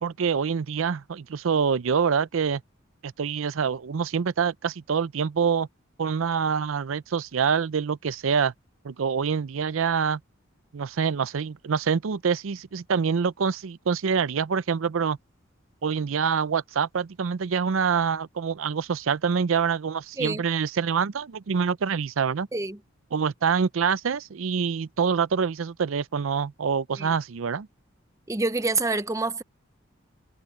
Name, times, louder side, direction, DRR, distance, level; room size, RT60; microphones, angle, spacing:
voice 1, 0.0-2.6 3.0-5.7 6.0-8.5 8.8-10.2 10.7-15.2 15.8-22.5 23.1-27.7, right 6 dB, 85° right, 0.5 m, -26 dB
voice 2, 28.3-29.4, right 3 dB, 15° right, 0.7 m, -27 dB
head